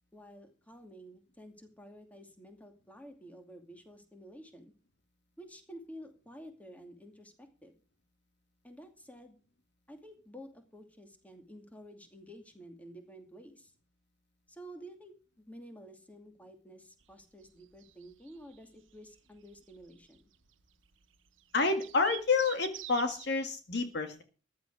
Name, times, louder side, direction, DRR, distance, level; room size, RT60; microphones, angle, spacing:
voice 1, 0.1-4.7 5.4-7.8 8.6-9.4 9.9-13.7 14.5-20.2, equal, 10° left, 5 dB, 2.5 m, -51 dB
sound 1, 17.0-23.3, right 14 dB, 80° right, 1.0 m, -47 dB
voice 2, 21.5-24.2, left 4 dB, 60° left, 7 dB, 1.9 m, -29 dB
14.5 x 11.5 x 4.8 m, 0.36 s
head